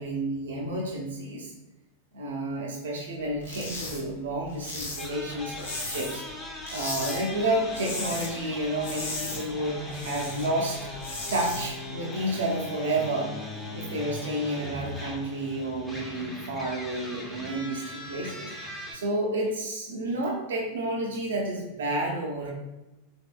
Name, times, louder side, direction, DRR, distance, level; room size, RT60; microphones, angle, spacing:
voice 1, 0.0-1.5 2.1-6.2 6.7-10.8 11.3-13.3 13.7-22.5, right 1 dB, 65° right, -1 dB, 0.6 m, -30 dB
sound 1, 3.4-4.0 4.3-6.3 6.6-7.2 7.5-8.3 8.6-10.5 10.8-11.6, left 2 dB, 75° left, 0.9 m, -36 dB
sound 2, 5.0-19.0, left 1 dB, 5° left, 0.7 m, -39 dB
3.9 x 3.5 x 2.2 m, 1.0 s
figure-of-eight pair, 90°, 0 cm